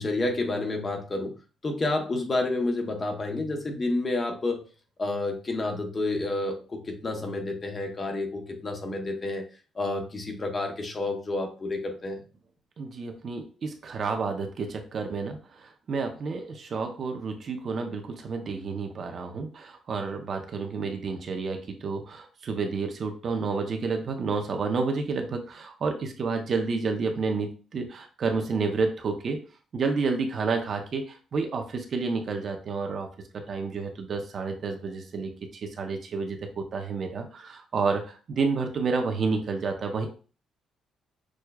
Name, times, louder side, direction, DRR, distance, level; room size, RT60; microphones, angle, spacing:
voice 1, 0.0-1.3 1.6-4.6 5.0-9.5 9.8-12.2, left 2 dB, 35° left, 3 dB, 0.9 m, -29 dB
voice 2, 12.8-29.4 29.7-33.1 33.3-40.1, right 4 dB, 55° right, 4 dB, 0.7 m, -30 dB
6.2 x 2.2 x 2.3 m, 0.37 s
cardioid pair, 90°, 0 cm